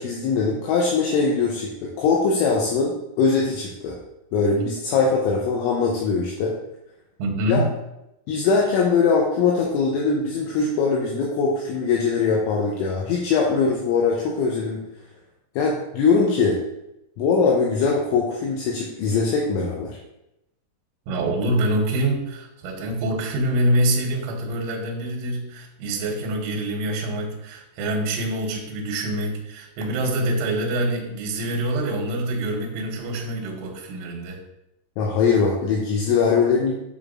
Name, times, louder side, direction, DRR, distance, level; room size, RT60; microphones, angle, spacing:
voice 1, 0.0-4.0 4.3-6.6 7.5-7.6 8.3-14.8 15.6-16.6 17.2-20.0 35.0-36.7, left 5 dB, 80° left, -1 dB, 2.9 m, -21 dB
voice 2, 7.2-7.7 21.1-34.4, right 1 dB, 80° right, 0 dB, 3.2 m, -25 dB
8.2 x 5.0 x 2.5 m, 0.86 s
omnidirectional pair, 5.9 m